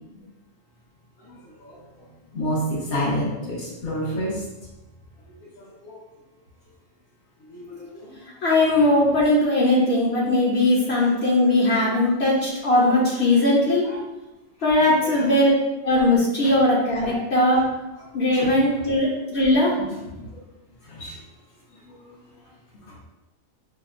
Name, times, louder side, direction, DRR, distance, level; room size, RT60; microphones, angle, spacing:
voice 1, 2.3-4.3 5.8-5.9 7.5-7.8 15.0-15.1 17.0-17.1 18.4-18.5 20.9-21.1, equal, 90° left, -8 dB, 1.7 m, -27 dB
voice 2, 8.4-13.8 14.6-15.5 15.8-17.6 18.1-19.9, left 1 dB, 60° left, -5 dB, 0.8 m, -19 dB
5.5 x 2.2 x 2.5 m, 1.0 s
omnidirectional pair, 1.4 m